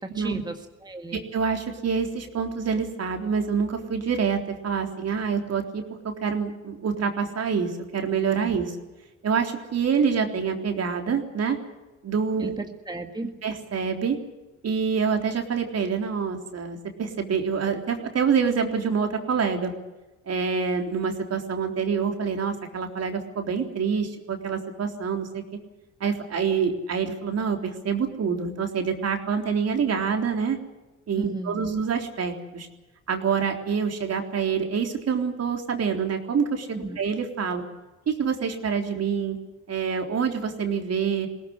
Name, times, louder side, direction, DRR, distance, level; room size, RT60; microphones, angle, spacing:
voice 1, 0.0-1.2 8.4-8.5 12.4-13.3 31.1-31.7 36.7-37.0, right 2 dB, 15° right, 5 dB, 1.8 m, -34 dB
voice 2, 1.1-8.8 9.2-11.6 12.0-12.6 13.4-14.2 14.6-19.7 20.3-25.6 26.0-30.6 31.1-32.7 33.1-37.6 38.1-39.4 39.7-41.3, right 6 dB, 55° right, 4 dB, 3.7 m, -26 dB
21.0 x 17.5 x 9.6 m, 1.1 s
cardioid pair, 90°, 30 cm